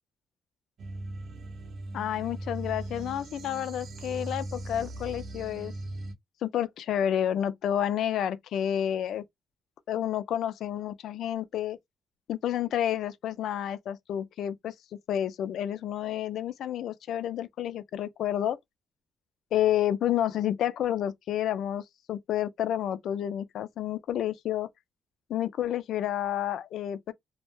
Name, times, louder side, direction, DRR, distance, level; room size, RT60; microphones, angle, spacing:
sound 1, 0.8-6.1, right 2 dB, 60° right, 0.5 m, -39 dB
voice 1, 1.9-5.7 6.4-9.2 9.9-11.8 12.3-14.7 15.1-18.6 19.5-21.8 22.1-24.7 25.3-27.1, left 11 dB, 75° left, 0.3 m, -30 dB
2.1 x 2.0 x 3.0 m
cardioid pair, 90°, 0 cm